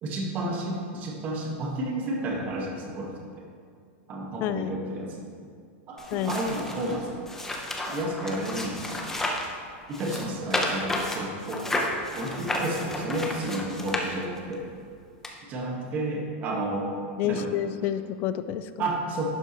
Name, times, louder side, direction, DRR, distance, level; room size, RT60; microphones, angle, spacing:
voice 1, 0.0-3.5 4.1-5.3 5.9-7.2 7.9-9.1 9.9-11.7 12.1-14.6 15.5-17.0 17.2-17.5 18.8-19.2, right 1 dB, 25° right, -1 dB, 1.5 m, -31 dB
voice 2, 4.4-4.8 6.1-6.4 17.2-18.9, left 10 dB, 30° left, 12 dB, 0.4 m, -29 dB
sound 1, 6.0-9.5 9.9-14.5 15.2-15.3, left 1 dB, 5° left, 0.7 m, -32 dB
11.5 x 7.9 x 3.0 m, 2.2 s
supercardioid pair, 165°, 7 cm